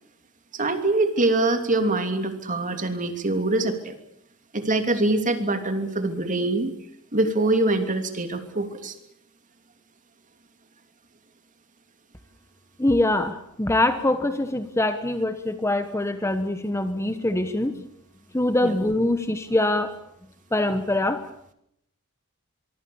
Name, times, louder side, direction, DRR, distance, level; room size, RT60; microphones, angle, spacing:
voice 1, 0.5-4.0 4.5-6.7 7.1-8.9 18.6-18.8, right 2 dB, 35° right, 7 dB, 2.9 m, -24 dB
voice 2, 12.8-17.8 18.3-19.9 20.5-21.2, left 1 dB, 10° left, 10 dB, 1.1 m, -24 dB
24.5 x 24.0 x 7.1 m, 0.75 s
head